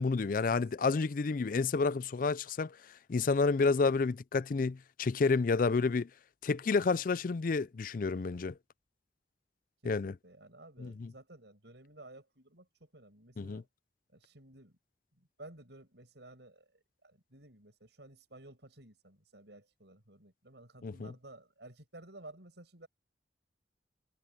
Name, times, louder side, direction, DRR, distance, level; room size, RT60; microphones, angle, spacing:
voice 1, 0.0-2.8 3.1-6.1 6.4-8.6 9.8-10.1 10.8-11.1 13.4-13.6 20.8-21.1, left 4 dB, 50° left, 0.4 m, -30 dB
voice 2, 9.8-13.7 14.1-14.8 15.2-16.7 17.0-22.9, right 2 dB, 75° right, 6.5 m, -54 dB
head